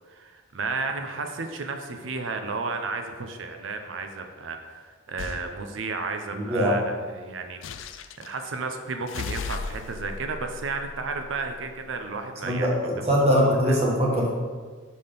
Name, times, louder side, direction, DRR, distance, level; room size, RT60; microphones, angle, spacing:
voice 1, 0.1-7.6 7.9-12.7, right 4 dB, 75° right, 6 dB, 0.6 m, -33 dB
sound 1, 5.2-5.5 7.6-8.3 9.1-11.7, left 4 dB, 70° left, 0.4 m, -36 dB
voice 2, 6.3-6.8 12.4-14.3, equal, 30° right, -3 dB, 1.2 m, -22 dB
5.5 x 4.1 x 5.1 m, 1.5 s
head